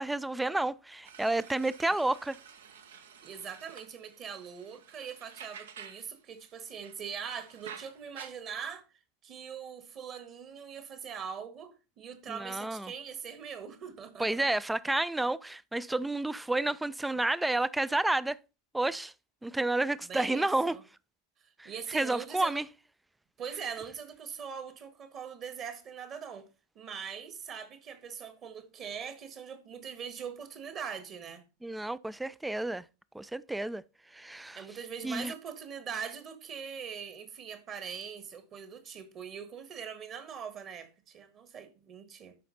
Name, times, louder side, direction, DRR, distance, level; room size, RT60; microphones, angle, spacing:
voice 1, 0.0-2.4 12.3-12.9 14.2-18.4 18.7-19.1 19.4-20.8 21.6-22.7 31.6-32.8 33.1-33.8 34.1-34.6 35.0-35.3, right 2 dB, 5° right, 0.4 m, -30 dB
sound 1, 1.0-6.1 6.4-8.3, right 7 dB, 60° right, 0.9 m, -51 dB
voice 2, 3.2-8.8 9.2-14.5 20.0-20.8 21.4-22.7 23.4-26.5 26.7-31.4 34.5-42.4, right 7 dB, 30° right, 1.6 m, -42 dB
12.0 x 5.0 x 4.0 m
figure-of-eight pair, 90°, 0 cm